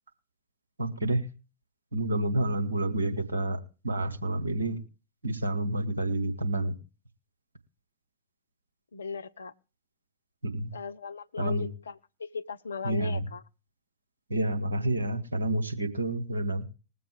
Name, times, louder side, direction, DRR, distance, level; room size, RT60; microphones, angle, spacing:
voice 1, 0.8-1.3 1.9-4.8 5.2-6.8 10.4-10.7 11.4-11.7 12.8-13.3 14.3-16.6, right 1 dB, 80° right, 1.5 m, -29 dB
voice 2, 8.9-9.5 10.7-13.4, left 5 dB, 75° left, 0.6 m, -37 dB
20.5 x 7.7 x 3.4 m
figure-of-eight pair, 90°, 0 cm